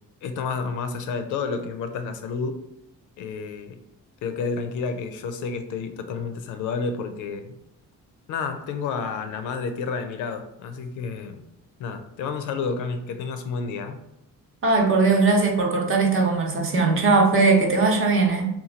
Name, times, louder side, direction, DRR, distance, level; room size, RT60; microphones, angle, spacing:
voice 1, 0.2-2.6 3.2-3.8 4.2-7.6 8.3-11.4 11.8-14.0, left 5 dB, 80° left, 8 dB, 0.5 m, -30 dB
voice 2, 14.6-18.5, right 3 dB, 45° right, 1 dB, 0.8 m, -19 dB
2.9 x 2.3 x 3.8 m, 0.83 s
cardioid pair, 90°, 30 cm